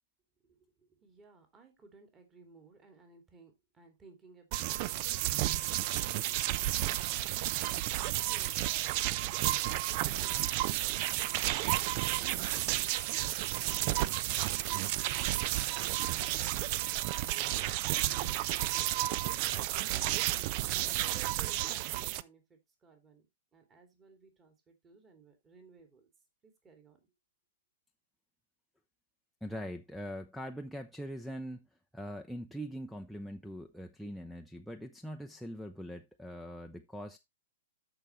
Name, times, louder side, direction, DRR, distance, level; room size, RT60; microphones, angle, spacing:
voice 1, 0.5-14.0 14.3-23.2 23.5-26.1 26.4-27.1, right 4 dB, 20° right, 2.6 m, -59 dB
sound 1, 4.5-22.2, right 15 dB, 40° right, 0.4 m, -32 dB
sound 2, 12.0-21.3, right 4 dB, 55° right, 2.4 m, -54 dB
voice 2, 29.4-31.7 31.9-37.2, equal, ahead, 0.6 m, -42 dB
13.5 x 4.9 x 3.1 m
figure-of-eight pair, 110°, 0 cm